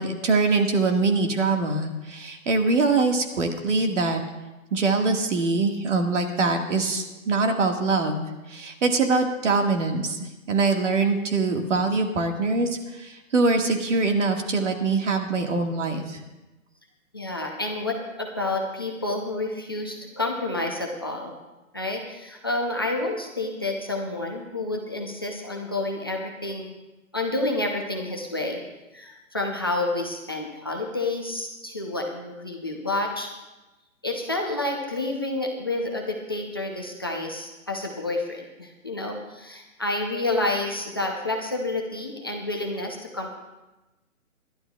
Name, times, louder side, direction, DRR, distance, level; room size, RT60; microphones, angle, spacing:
voice 1, 0.0-4.2 4.7-16.2, right 3 dB, 60° right, 3 dB, 1.8 m, -23 dB
voice 2, 17.1-21.3 21.7-26.7 27.1-28.6 28.9-33.3 34.0-43.4, left 2 dB, 15° left, 0 dB, 0.5 m, -29 dB
27.5 x 11.5 x 2.3 m, 1.1 s
hypercardioid pair, 160°, 42 cm